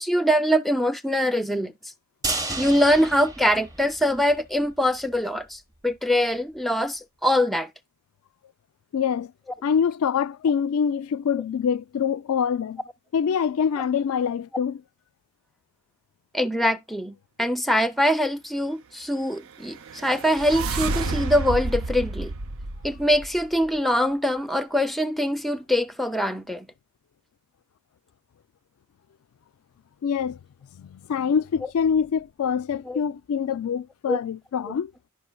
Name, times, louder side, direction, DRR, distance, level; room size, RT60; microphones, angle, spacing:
voice 1, 0.0-1.7 2.6-7.7 16.3-22.3 22.8-26.7 32.8-33.0 34.1-34.2 34.7-34.8, equal, ahead, 0.4 m, -23 dB
sound 1, 2.2-4.4 4.7-4.8 5.1-5.2, right 2 dB, 15° right, 0.8 m, -32 dB
voice 2, 8.9-9.3 9.6-12.8 13.1-14.8 30.0-30.4 30.8-34.9, left 7 dB, 75° left, 0.4 m, -25 dB
sound 2, 19.5-23.7, right 3 dB, 65° right, 0.5 m, -30 dB
11.0 x 5.6 x 2.3 m
head